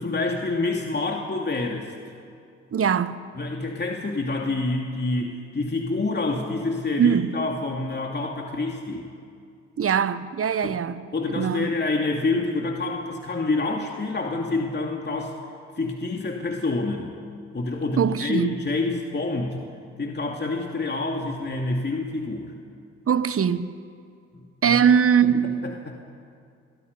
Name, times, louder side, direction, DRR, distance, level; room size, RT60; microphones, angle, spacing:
voice 1, 0.0-1.9 3.4-9.1 10.6-10.8 11.1-15.3 15.8-17.2 17.5-19.6 20.0-22.5 24.3-24.8 25.2-25.9, left 3 dB, 30° left, 2.8 m, -27 dB
voice 2, 2.7-3.2 7.0-7.4 9.8-11.0 11.4-11.7 18.0-18.6 23.1-23.8 24.6-25.6, right 7 dB, 40° right, 1.2 m, -21 dB
28.0 x 22.5 x 5.6 m
hypercardioid pair, 45°, 35 cm